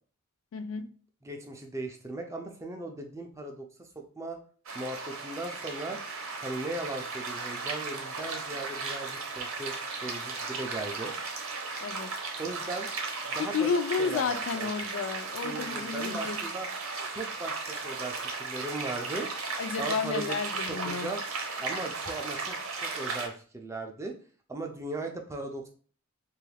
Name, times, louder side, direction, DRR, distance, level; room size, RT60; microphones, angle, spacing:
voice 1, 0.5-0.9 11.8-12.1 13.4-16.4 19.6-21.1, left 5 dB, 70° left, 0.3 m, -31 dB
voice 2, 1.2-4.4 4.7-6.0 6.4-9.7 10.0-11.1 12.4-12.9 13.3-13.7 14.0-14.7 15.4-16.7 17.1-19.3 19.8-21.2 21.6-24.1 24.5-25.7, right 2 dB, 15° right, 0.3 m, -38 dB
sound 1, 4.7-23.3, right 4 dB, 90° right, 0.7 m, -36 dB
3.0 x 2.4 x 3.2 m
head